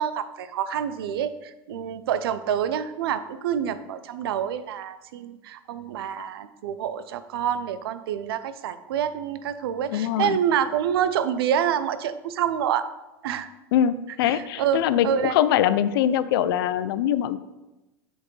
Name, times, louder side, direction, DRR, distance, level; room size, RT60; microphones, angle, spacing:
voice 1, 0.0-12.9 13.2-13.5 14.2-15.4, right 9 dB, 80° right, 13 dB, 0.5 m, -27 dB
voice 2, 9.9-10.4 13.7-17.4, left 10 dB, 75° left, 14 dB, 0.4 m, -23 dB
7.8 x 4.3 x 3.2 m, 1.0 s
hypercardioid pair, 100°, 12 cm